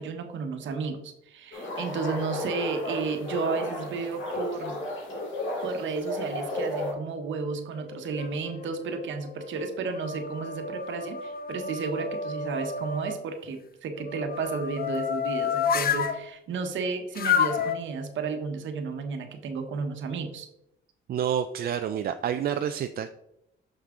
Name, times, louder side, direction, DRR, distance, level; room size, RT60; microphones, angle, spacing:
voice 1, 0.0-4.8 5.6-20.5, right 4 dB, 70° right, 5 dB, 1.1 m, -32 dB
sound 1, 1.5-6.9, left 1 dB, 75° left, 2.2 m, -33 dB
sound 2, 7.8-8.6 9.2-13.2 14.0-16.2 17.2-17.8, left 7 dB, 50° left, 0.6 m, -30 dB
voice 2, 21.1-23.1, right 9 dB, 50° right, 9 dB, 0.4 m, -28 dB
6.4 x 5.9 x 3.7 m, 0.83 s
cardioid pair, 90°, 20 cm